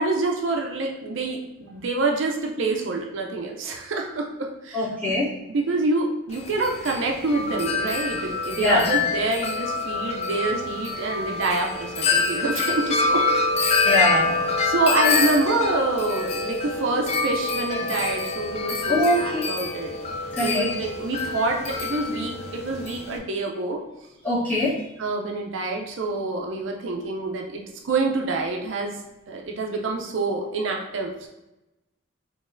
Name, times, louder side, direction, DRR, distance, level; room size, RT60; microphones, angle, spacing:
voice 1, 0.0-5.2 5.5-13.2 13.7-14.0 14.6-19.9 20.4-23.8 25.0-28.9 29.3-31.3, right 3 dB, 75° right, 1 dB, 0.5 m, -27 dB
voice 2, 4.7-5.3 8.6-8.9 13.8-14.5 18.9-19.5 20.3-20.7 24.2-24.7, left 1 dB, 10° left, -10 dB, 1.2 m, -22 dB
Wind chime, 6.3-23.2, left 3 dB, 30° left, 0.3 m, -26 dB
3.9 x 3.0 x 2.5 m, 0.97 s
head